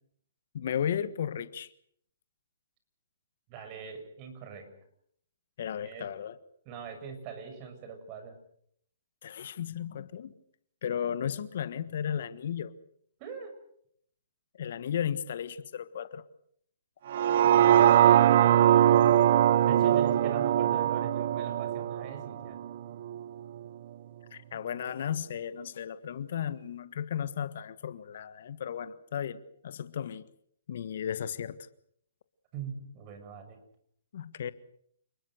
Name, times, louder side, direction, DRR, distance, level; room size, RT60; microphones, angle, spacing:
voice 1, 0.5-1.7 5.6-6.4 9.2-10.3 10.8-12.7 14.6-16.2 24.3-30.3 30.7-31.7 34.1-34.5, left 9 dB, 60° left, 14 dB, 1.5 m, -34 dB
voice 2, 3.5-4.7 5.8-6.1 6.6-8.4 13.2-13.6 17.6-19.2 19.6-22.6 32.5-33.6, right 6 dB, 35° right, 7 dB, 6.8 m, -42 dB
sound 1, 17.1-23.2 23.7-23.8, right 11 dB, 55° right, 1.0 m, -22 dB
29.0 x 21.0 x 6.6 m, 0.68 s
hypercardioid pair, 135°, 0 cm